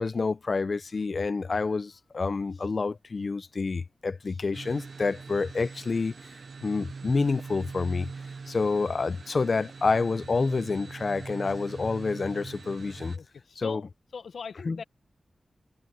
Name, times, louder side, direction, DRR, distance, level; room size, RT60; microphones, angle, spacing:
voice 1, 0.0-6.1 6.6-8.1 8.5-13.2 13.6-13.8 14.7-14.8, left 4 dB, 40° left, 0.5 m, -28 dB
sound 1, 4.5-13.2, right 4 dB, 60° right, 0.6 m, -42 dB
voice 2, 13.1-14.8, left 6 dB, 85° left, 1.1 m, -40 dB
wide cardioid pair, 160°, 0 cm